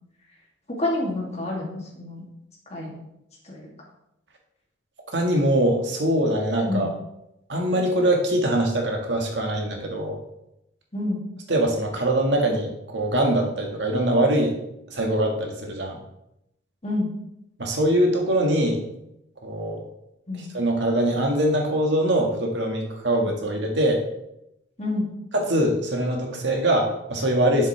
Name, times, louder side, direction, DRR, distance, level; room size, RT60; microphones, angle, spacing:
voice 1, 0.7-2.3 2.7-2.9 3.4-3.7 6.7-6.9 10.9-11.2 16.8-17.1 20.3-20.5 24.8-25.1, left 2 dB, 35° left, -2 dB, 2.4 m, -28 dB
voice 2, 5.1-6.9 7.5-10.2 11.5-14.6 14.9-16.0 17.6-18.8 19.4-19.8 20.5-24.0 25.3-27.7, right 1 dB, 65° right, 1 dB, 1.7 m, -23 dB
11.0 x 7.4 x 3.3 m, 0.84 s
head